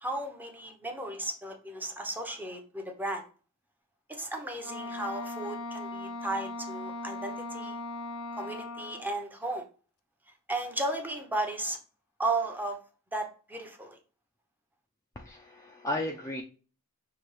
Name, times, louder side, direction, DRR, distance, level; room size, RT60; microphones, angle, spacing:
voice 1, 0.0-3.3 4.1-7.8 8.3-9.6 10.5-11.8 12.2-12.8 13.1-14.0, right 2 dB, 10° right, 3 dB, 0.8 m, -34 dB
Wind instrument woodwind instrument, 4.6-9.1, left 2 dB, 90° left, 0.6 m, -38 dB
voice 2, 15.2-16.4, left 1 dB, 15° left, 1 dB, 0.4 m, -34 dB
5.8 x 2.8 x 3.2 m, 0.37 s
head